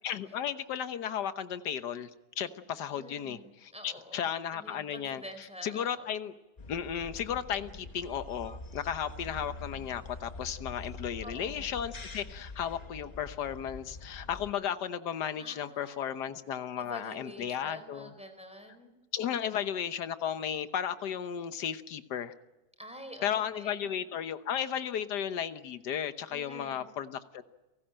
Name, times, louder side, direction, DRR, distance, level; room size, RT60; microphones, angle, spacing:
voice 1, 0.0-2.1 2.4-5.2 5.6-6.3 6.7-18.1 19.1-22.3 23.2-27.4, left 9 dB, 60° left, 11 dB, 1.5 m, -34 dB
voice 2, 2.9-6.1 11.2-11.8 15.4-16.3 16.8-18.9 22.8-23.9 26.3-26.9, equal, 5° right, 7 dB, 4.2 m, -48 dB
sound 1, 6.6-14.5, left 2 dB, 30° left, 0.7 m, -45 dB
30.0 x 18.5 x 8.9 m, 1.1 s
omnidirectional pair, 2.3 m